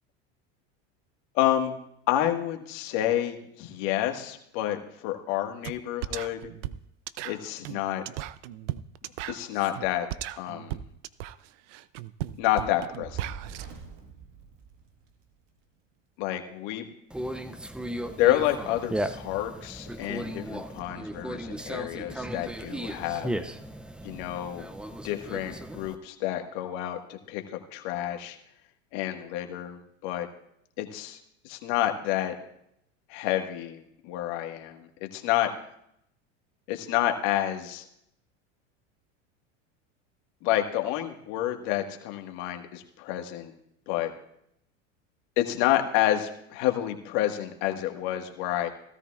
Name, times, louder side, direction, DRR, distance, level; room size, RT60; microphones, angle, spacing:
voice 1, 1.3-1.7 2.1-6.5 7.2-8.0 9.3-10.1 10.4-10.8 12.4-13.3 16.2-16.9 18.2-23.3 24.0-24.7 25.0-28.4 28.9-30.3 30.8-31.2 31.4-32.3 33.1-35.5 36.7-37.8 40.4-43.5 43.9-44.1 45.4-48.7, left 13 dB, 60° left, 5 dB, 1.6 m, -29 dB
sound 1, 5.6-5.8 6.0-13.6, right 14 dB, 70° right, 0.6 m, -36 dB
Fire, 12.9-15.4, right 6 dB, 55° right, 1.6 m, -44 dB
Conversation, 17.1-26.0, right 1 dB, 5° right, 0.4 m, -36 dB
16.5 x 13.5 x 2.4 m, 0.73 s
hypercardioid pair, 100°, 38 cm